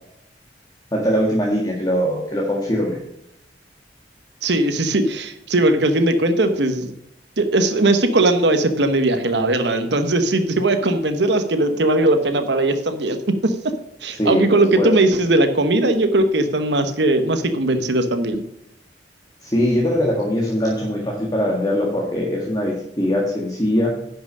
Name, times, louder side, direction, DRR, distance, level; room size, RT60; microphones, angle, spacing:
voice 1, 0.9-3.0 14.2-14.5 14.8-14.9 19.4-23.9, equal, 20° left, -2 dB, 1.7 m, -21 dB
voice 2, 4.4-6.9 7.4-13.5 14.0-18.4, right 2 dB, 75° right, 8 dB, 1.1 m, -19 dB
11.0 x 6.0 x 6.3 m, 0.76 s
head